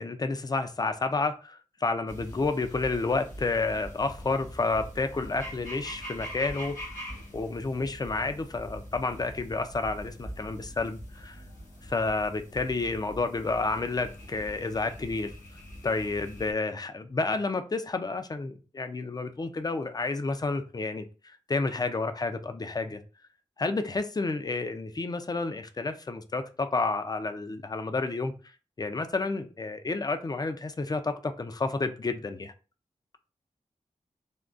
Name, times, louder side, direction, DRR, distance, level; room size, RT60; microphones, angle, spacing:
voice 1, 0.0-1.3 1.8-6.7 7.3-11.4 11.8-15.3 15.8-21.0 21.5-23.0 23.6-28.3 28.8-32.5, left 3 dB, 30° left, 8 dB, 0.4 m, -30 dB
sound 1, 2.1-16.5, equal, 90° left, 1.0 m, -43 dB
3.6 x 2.2 x 2.5 m, 0.35 s
cardioid pair, 65°, 13 cm